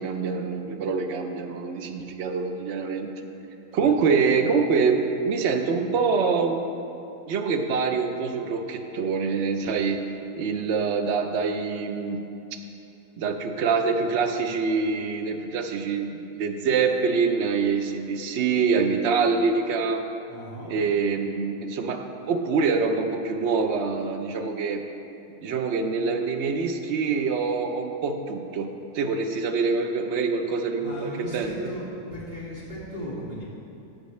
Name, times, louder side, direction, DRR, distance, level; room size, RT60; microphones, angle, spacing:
voice 1, 0.0-3.1 3.7-6.7 7.3-10.1 10.4-12.2 13.2-20.1 20.7-24.8 25.4-31.7, right 5 dB, 60° right, 6 dB, 0.7 m, -25 dB
voice 2, 20.3-20.8 30.8-31.9 32.1-33.4, equal, 35° right, -9 dB, 2.2 m, -37 dB
12.5 x 8.4 x 3.2 m, 2.8 s
omnidirectional pair, 1.8 m